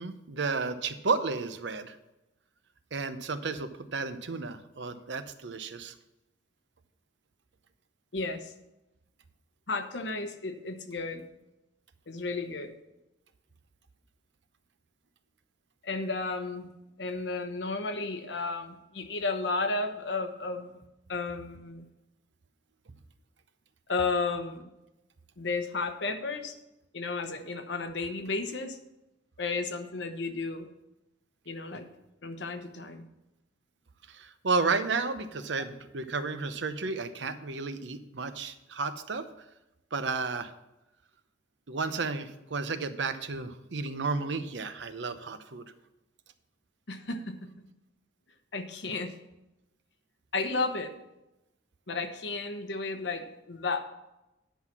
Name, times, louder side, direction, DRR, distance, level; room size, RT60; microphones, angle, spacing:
voice 1, 0.0-2.0 2.9-5.9 34.1-39.2 39.9-40.5 41.7-45.7, right 4 dB, 75° right, 10 dB, 0.8 m, -32 dB
voice 2, 8.1-8.5 9.7-11.3 12.1-12.7 15.8-16.7 17.0-20.8 21.1-21.9 23.9-24.7 25.4-26.6 26.9-28.8 29.4-30.7 31.5-31.9 32.2-33.1 46.9-47.3 48.5-49.2 50.3-51.0 51.9-53.8, left 3 dB, 70° left, 7 dB, 1.0 m, -33 dB
10.0 x 5.8 x 6.0 m, 0.94 s
head